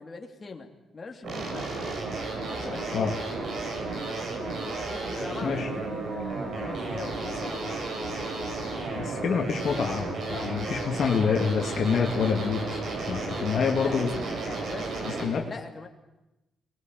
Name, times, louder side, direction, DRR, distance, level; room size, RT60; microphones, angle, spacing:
voice 1, 0.0-1.7 2.5-3.3 4.8-8.6 13.8-15.9, left 4 dB, 30° left, 3 dB, 3.1 m, -42 dB
sound 1, 1.2-15.2, right 3 dB, 60° right, 7.4 m, -33 dB
voice 2, 9.0-12.8 13.1-14.1 15.1-15.4, left 6 dB, 60° left, 2 dB, 2.4 m, -27 dB
24.0 x 20.5 x 9.3 m, 0.99 s
cardioid pair, 115°, 0 cm